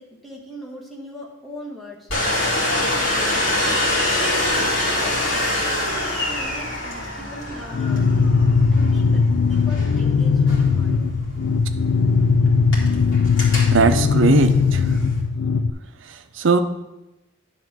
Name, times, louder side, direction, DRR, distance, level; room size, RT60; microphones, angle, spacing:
voice 1, 0.0-2.1 2.5-3.8 4.7-5.6 6.0-8.4 8.7-11.1, equal, ahead, -4 dB, 1.5 m, -39 dB
Domestic sounds home sounds, 2.1-15.2, left 1 dB, 70° left, 2.1 m, -26 dB
sound 1, 7.7-15.7, left 5 dB, 90° left, 0.4 m, -19 dB
voice 2, 13.7-15.0 16.0-16.6, right 4 dB, 75° right, 9 dB, 0.6 m, -19 dB
10.5 x 3.7 x 6.1 m, 0.95 s
head